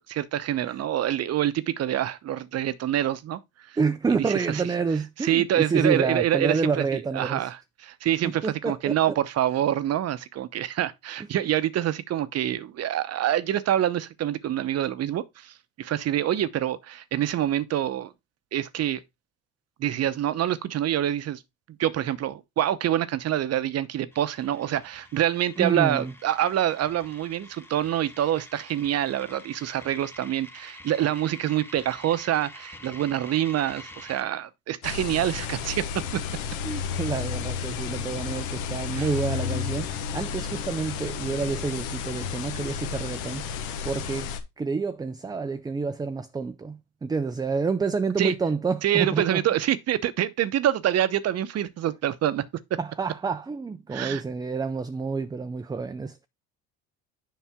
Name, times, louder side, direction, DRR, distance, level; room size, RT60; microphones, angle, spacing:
voice 1, 0.1-3.4 3.7-3.8 4.2-4.6 5.2-6.8 7.1-18.1 18.5-19.0 19.8-21.4 21.8-36.2 38.9-39.1 48.2-48.3 48.8-52.5 52.7-52.8 53.9-54.2, right 11 dB, 45° right, 0.8 m, -26 dB
voice 2, 3.8-7.5 8.2-9.0 25.6-26.1 36.6-43.5 43.8-49.4 52.8-56.3, right 4 dB, 10° right, 0.4 m, -28 dB
sound 1, 24.1-34.2, left 1 dB, 5° left, 1.2 m, -47 dB
sound 2, 34.8-44.4, left 7 dB, 85° left, 1.3 m, -32 dB
7.3 x 5.6 x 3.5 m
supercardioid pair, 95°, 34 cm